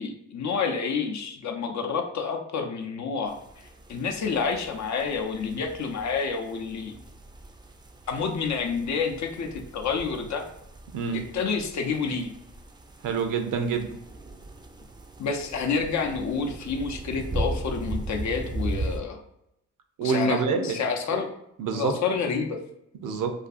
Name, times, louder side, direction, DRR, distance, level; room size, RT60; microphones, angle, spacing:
voice 1, 0.0-6.9 8.1-10.4 11.1-12.3 15.2-19.2 20.0-21.3 21.7-22.6, left 5 dB, 60° left, 4 dB, 0.5 m, -29 dB
sound 1, 3.3-19.0, right 2 dB, 15° right, 0.3 m, -38 dB
voice 2, 13.0-13.9 20.0-20.8 21.6-22.0 23.0-23.3, right 5 dB, 75° right, 5 dB, 0.5 m, -26 dB
2.5 x 2.3 x 2.4 m, 0.79 s
supercardioid pair, 55°, 32 cm